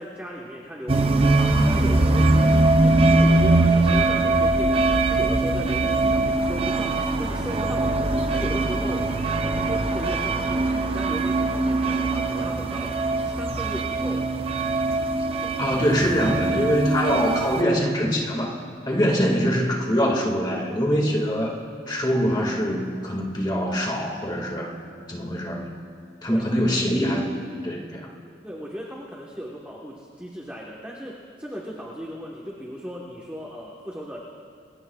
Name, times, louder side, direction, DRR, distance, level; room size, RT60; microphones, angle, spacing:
voice 1, 0.0-9.1 9.4-13.0 13.2-14.3 15.4-15.7 26.3-26.5 28.4-34.2, equal, 10° right, -3 dB, 1.2 m, -36 dB
sound 1, 0.9-17.6, right 2 dB, 30° right, 0.7 m, -22 dB
voice 2, 15.6-18.5 18.9-21.6 21.9-24.7 25.1-25.7 26.2-27.3 27.6-28.0, equal, 25° left, -1 dB, 1.9 m, -23 dB
27.5 x 20.5 x 2.4 m, 2.4 s
head